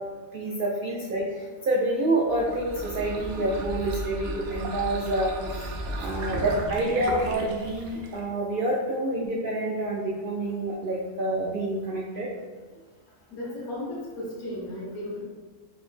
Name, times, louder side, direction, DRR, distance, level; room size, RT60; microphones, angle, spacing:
voice 1, 0.3-5.7 6.0-12.3, right 1 dB, 85° right, -3 dB, 0.4 m, -28 dB
sound 1, 2.3-8.3, right 2 dB, 65° right, 0.8 m, -35 dB
voice 2, 13.3-15.2, left 1 dB, 85° left, -5 dB, 1.6 m, -35 dB
4.8 x 2.0 x 3.2 m, 1.4 s
omnidirectional pair, 1.5 m